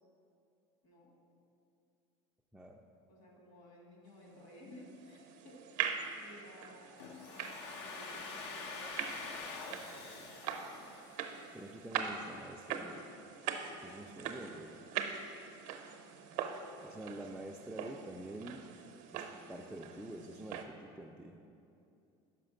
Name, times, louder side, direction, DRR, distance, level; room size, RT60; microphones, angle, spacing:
voice 1, 0.8-1.2 3.1-10.1 13.6-14.2, equal, 60° left, -1 dB, 1.8 m, -57 dB
voice 2, 2.5-2.8 11.5-13.0 13.8-14.8 16.8-18.6 19.1-19.2 19.5-21.4, right 1 dB, 5° right, 0 dB, 0.3 m, -47 dB
sound 1, 4.6-20.6, right 8 dB, 65° right, 0.6 m, -43 dB
Domestic sounds home sounds, 7.0-11.8, left 4 dB, 85° left, 0.8 m, -46 dB
5.9 x 4.9 x 6.3 m, 2.6 s
supercardioid pair, 125°, 14 cm